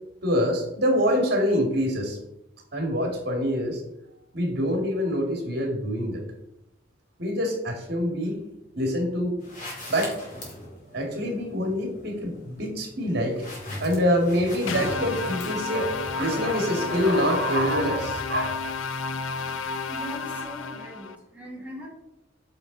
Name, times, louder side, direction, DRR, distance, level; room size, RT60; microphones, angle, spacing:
voice 1, 0.2-2.2 2.7-3.8 4.3-6.2 7.2-8.4 8.8-9.4 9.9-10.2 10.9-13.5 13.8-18.6, equal, 55° right, 2 dB, 2.3 m, -25 dB
sound 1, 9.4-16.0, left 1 dB, 40° left, 2.6 m, -39 dB
sound 2, 14.7-21.2, left 4 dB, 85° left, 0.6 m, -31 dB
voice 2, 19.8-21.9, right 1 dB, 5° right, -4 dB, 2.1 m, -40 dB
8.9 x 5.1 x 4.0 m, 0.87 s
head